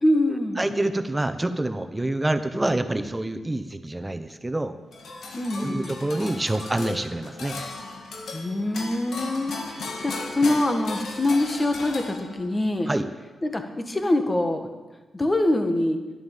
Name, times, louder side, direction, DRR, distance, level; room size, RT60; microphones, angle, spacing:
voice 1, 0.0-0.7 5.3-6.0 8.3-12.9 13.4-14.7 15.1-16.0, left 1 dB, 25° left, 6 dB, 1.8 m, -24 dB
voice 2, 0.6-4.8 5.6-7.5 12.9-13.0, right 1 dB, 20° right, 9 dB, 1.1 m, -27 dB
sound 1, 4.9-12.6, left 3 dB, 75° left, 1.9 m, -36 dB
11.5 x 11.0 x 7.5 m, 1.2 s
cardioid pair, 55°, 0 cm